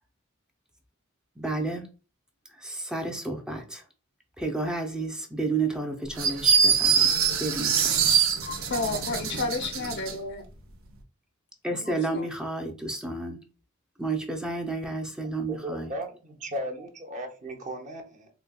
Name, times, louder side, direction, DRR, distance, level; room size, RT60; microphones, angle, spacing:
voice 1, 1.4-1.8 2.5-3.8 4.4-8.3 11.6-13.4 14.0-15.9, right 3 dB, 5° right, 0.5 m, -31 dB
sound 1, 6.2-10.2, right 6 dB, 75° right, 0.7 m, -23 dB
voice 2, 8.4-10.4 11.9-12.3, left 3 dB, 55° left, 0.6 m, -32 dB
voice 3, 15.5-18.3, right 1 dB, 35° right, 0.7 m, -36 dB
4.0 x 2.7 x 2.2 m
head